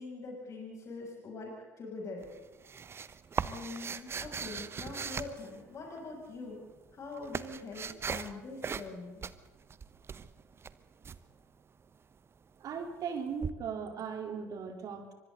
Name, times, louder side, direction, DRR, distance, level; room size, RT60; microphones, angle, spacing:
voice 1, 0.0-2.3 3.4-6.6 6.9-9.2, left 3 dB, 35° left, -2 dB, 7.7 m, -43 dB
sound 1, 2.2-6.0 6.8-8.3 8.6-8.9 9.2-11.2 13.4-13.5, right 6 dB, 30° right, 1.2 m, -39 dB
voice 2, 12.6-15.1, right 6 dB, 45° right, 4 dB, 3.9 m, -38 dB
29.0 x 25.0 x 4.1 m, 1.2 s
figure-of-eight pair, 65°, 8 cm